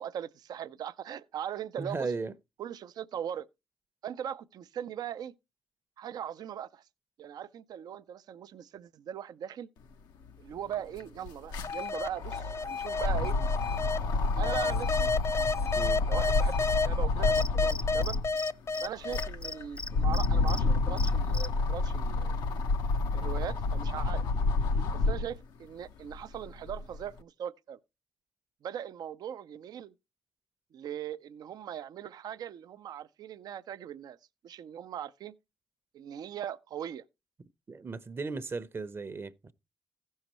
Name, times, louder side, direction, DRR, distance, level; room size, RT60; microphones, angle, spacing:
voice 1, 0.0-2.1 2.6-3.5 4.0-5.3 6.0-6.8 7.2-9.7 10.4-13.3 14.3-15.1 16.1-18.2 18.8-22.4 23.1-24.3 24.9-27.8 28.6-29.9 30.7-34.2 34.4-35.3 35.9-37.0, right 9 dB, 70° right, 0.5 m, -39 dB
voice 2, 1.8-2.3 15.7-16.0 37.7-39.5, right 4 dB, 35° right, 0.7 m, -36 dB
sound 1, 10.2-10.3 10.6-18.4 18.9-25.4 25.9-27.0, left 3 dB, 90° left, 0.8 m, -29 dB
sound 2, 11.6-14.0 14.4-16.9 17.2-19.6, left 4 dB, 45° left, 0.8 m, -30 dB
Cricket, 17.4-18.5 18.7-18.9 19.1-20.6 21.0-21.5, left 2 dB, 15° left, 0.6 m, -38 dB
15.5 x 6.4 x 3.0 m
cardioid pair, 70°, 7 cm